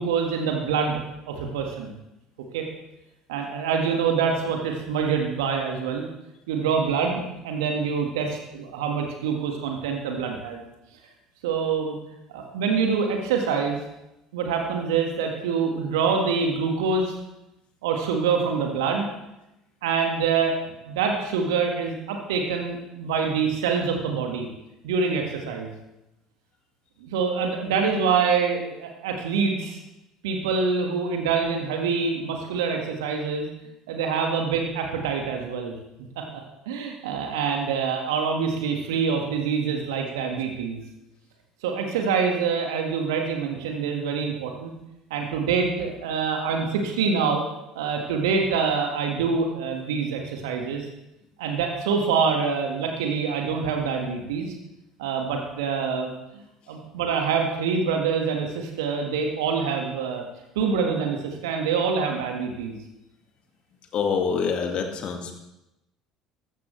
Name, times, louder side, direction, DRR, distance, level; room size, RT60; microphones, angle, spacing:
voice 1, 0.0-1.9 2.5-2.6 3.3-6.0 6.5-10.6 11.4-11.9 12.3-13.8 14.3-17.1 17.8-19.1 19.8-20.5 20.9-24.5 24.8-25.7 27.0-29.8 30.2-33.5 33.9-40.8 41.6-44.7 45.1-47.4 47.7-50.9 51.4-54.5 55.0-60.2 60.5-62.8, right 5 dB, 70° right, 2 dB, 1.7 m, -25 dB
voice 2, 63.9-65.3, left 6 dB, 50° left, 4 dB, 2.0 m, -26 dB
14.0 x 14.0 x 3.3 m, 0.91 s
figure-of-eight pair, 60°, 2 cm